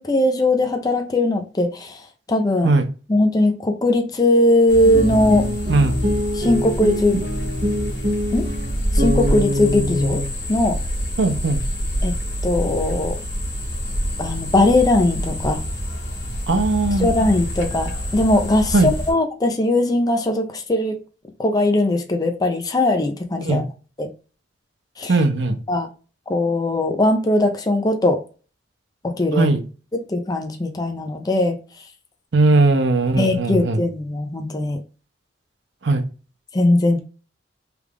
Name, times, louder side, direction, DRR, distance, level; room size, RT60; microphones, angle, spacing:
voice 1, 0.0-2.0 2.3-2.7 3.1-5.5 6.3-7.2 8.3-8.5 8.9-10.2 10.5-10.8 12.0-12.1 12.4-13.1 14.2-15.6 17.0-21.0 21.4-23.7 24.0-24.1 25.0-25.2 25.7-25.9 26.3-28.2 29.0-29.5 29.9-31.6 33.2-34.8 36.5-37.0, left 1 dB, 20° left, 0.4 m, -19 dB
sound 1, 4.7-19.1, equal, 70° left, 1.5 m, -27 dB
sound 2, 4.8-10.3, equal, 40° right, 0.8 m, -25 dB
voice 2, 11.2-11.6 16.5-17.1 18.7-18.9 23.4-23.6 25.1-25.6 29.3-29.6 32.3-33.8 35.8-36.0, right 2 dB, 70° right, 0.6 m, -18 dB
3.3 x 2.4 x 3.4 m
head